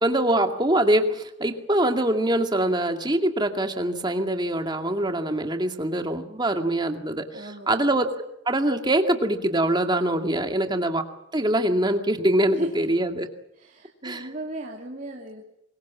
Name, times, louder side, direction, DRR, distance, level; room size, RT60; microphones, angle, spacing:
voice 1, 0.0-8.1 8.5-11.0 11.3-13.3 14.0-14.3, right 1 dB, 20° right, 5 dB, 2.2 m, -24 dB
voice 2, 7.3-7.7 10.3-10.4 12.5-12.7 13.5-15.4, right 1 dB, 45° right, 0 dB, 2.7 m, -36 dB
25.0 x 22.5 x 7.3 m, 0.84 s
head